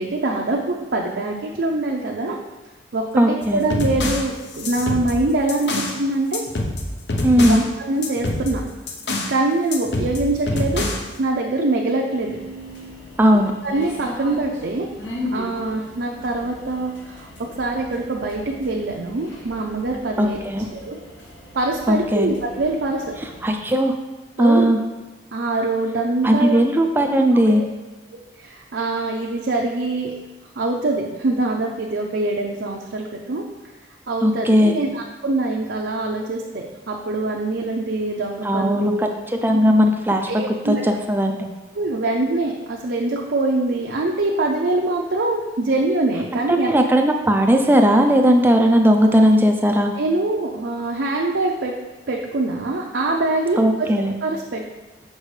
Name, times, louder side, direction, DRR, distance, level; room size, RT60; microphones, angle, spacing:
voice 1, 0.0-2.4 2.9-6.4 7.4-8.6 9.3-10.9 11.2-12.4 13.6-14.9 15.3-17.3 17.6-20.4 20.7-21.0 21.5-23.1 24.4-24.7 25.3-26.7 27.5-27.7 28.4-30.1 30.6-33.4 34.1-39.1 40.3-40.8 41.7-46.8 49.9-51.7 52.1-53.9 54.2-54.6, right 2 dB, 65° right, -1 dB, 0.5 m, -24 dB
voice 2, 3.2-3.6 7.2-7.6 13.2-13.5 20.2-20.7 21.9-22.3 23.4-23.9 24.4-24.8 26.2-27.6 34.2-34.8 38.4-39.1 39.4-41.5 46.3-49.9 53.6-54.1, equal, 10° right, 4 dB, 0.3 m, -17 dB
sound 1, 3.4-6.0 6.3-7.7 8.0-9.4 9.7-11.1, left 2 dB, 65° left, 0.7 m, -26 dB
sound 2, 12.1-23.5, left 1 dB, 80° left, 1.7 m, -37 dB
6.5 x 5.2 x 3.2 m, 1.2 s
head